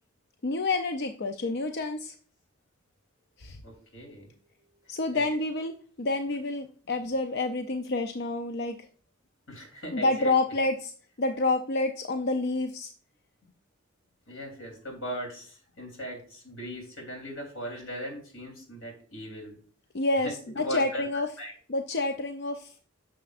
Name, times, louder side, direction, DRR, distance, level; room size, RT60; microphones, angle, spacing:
voice 1, 0.4-2.1 3.4-3.6 4.9-5.7 6.0-8.7 9.9-10.9 11.2-12.9 19.9-21.3 21.7-22.7, left 2 dB, 55° left, 6 dB, 0.6 m, -28 dB
voice 2, 3.6-4.3 4.8-5.2 9.5-10.3 14.3-19.5 20.2-21.5, equal, 90° left, 1 dB, 3.5 m, -39 dB
9.3 x 6.7 x 2.5 m, 0.43 s
head